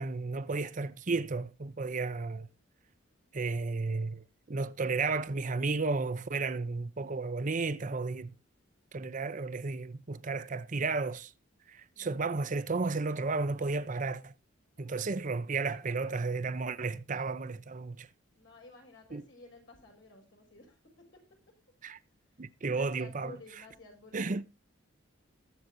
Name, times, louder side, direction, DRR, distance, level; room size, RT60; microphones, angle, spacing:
voice 1, 0.0-2.5 3.3-8.3 8.9-11.3 11.7-14.3 14.8-18.1 19.1-19.2 21.8-22.0 22.4-23.3 24.1-24.4, right 3 dB, 40° right, 0.6 m, -33 dB
voice 2, 11.9-12.4 14.8-15.0 15.9-16.1 18.3-20.8 22.3-22.4 22.7-24.3, left 3 dB, 70° left, 5.8 m, -53 dB
20.5 x 7.9 x 2.7 m
head